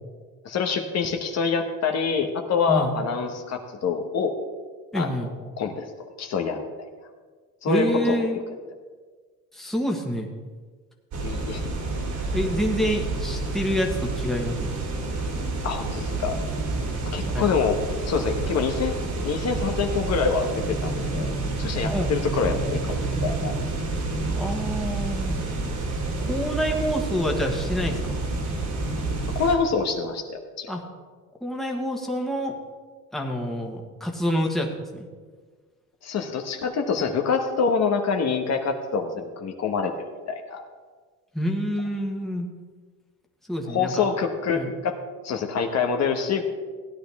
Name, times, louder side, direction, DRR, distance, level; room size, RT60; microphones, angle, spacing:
voice 1, 0.4-4.3 4.9-5.3 5.6-5.9 6.2-6.8 7.6-8.4 11.2-11.6 15.6-16.4 17.1-17.8 18.0-18.9 19.2-23.5 29.3-30.7 36.0-39.9 40.3-40.6 43.7-45.0 45.2-46.4, left 5 dB, 50° left, 4 dB, 1.3 m, -26 dB
voice 2, 4.9-5.3 7.7-8.4 9.5-10.3 12.3-14.8 17.3-17.4 21.9-22.4 24.3-25.4 26.2-28.0 30.7-30.8 31.4-32.6 33.1-35.1 41.3-42.5 43.5-44.0 44.5-44.7, equal, ahead, 0 dB, 1.5 m, -27 dB
sound 1, 11.1-29.5, right 2 dB, 55° right, 2.5 m, -29 dB
16.0 x 10.5 x 3.5 m, 1.5 s
cardioid pair, 130°, 33 cm